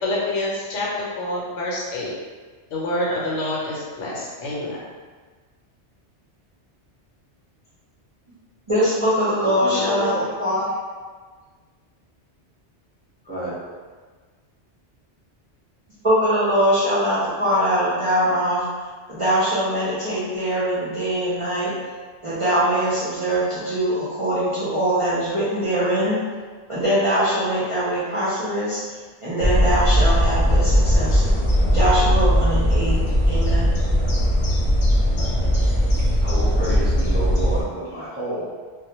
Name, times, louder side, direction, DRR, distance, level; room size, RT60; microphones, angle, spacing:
voice 1, 0.0-2.2 2.7-4.8, left 1 dB, 90° left, -5 dB, 1.0 m, -27 dB
voice 2, 8.7-10.1 10.4-10.6 16.0-18.7 19.1-21.7 22.2-26.2 26.7-28.8 29.2-31.2 31.7-33.0 33.3-33.7, equal, 40° right, -11 dB, 0.5 m, -22 dB
voice 3, 9.4-10.3 13.2-13.5 35.3-35.6 36.2-38.4, right 1 dB, 10° right, -11 dB, 0.8 m, -30 dB
sound 1, 29.4-37.6, equal, 50° left, 0.7 m, -19 dB
2.2 x 2.1 x 2.9 m, 1.5 s
omnidirectional pair, 1.2 m